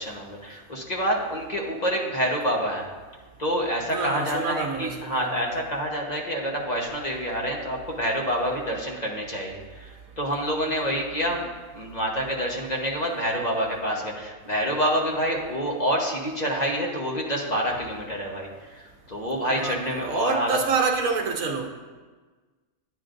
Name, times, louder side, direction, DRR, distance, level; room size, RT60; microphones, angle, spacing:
voice 1, 0.0-2.9 3.4-11.5 11.7-20.6, equal, 30° left, 1.1 m, -27 dB
voice 2, 3.9-5.6 19.4-21.7, right 4 dB, 70° right, 1.4 m, -27 dB
10.0 x 9.6 x 2.6 m
omnidirectional pair, 1.5 m